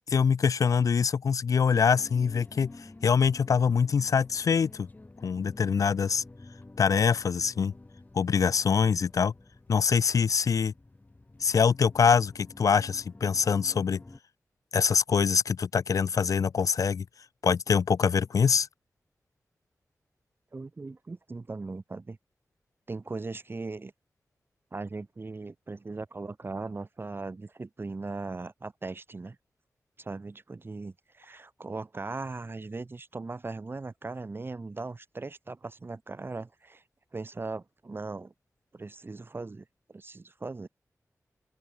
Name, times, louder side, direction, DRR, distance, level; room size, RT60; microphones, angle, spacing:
voice 1, 0.1-4.9 5.2-6.2 6.8-7.7 8.1-9.3 9.7-10.7 11.4-14.0 14.7-17.1 17.4-18.7, left 6 dB, 75° left, 0.6 m, -24 dB
sound 1, 1.6-14.2, left 2 dB, 30° left, 7.6 m, -50 dB
voice 2, 20.5-22.2 22.9-23.9 24.7-29.4 30.0-36.8 37.1-38.3 38.7-40.7, right 3 dB, 40° right, 2.6 m, -39 dB
open air
wide cardioid pair, 85°, 6 cm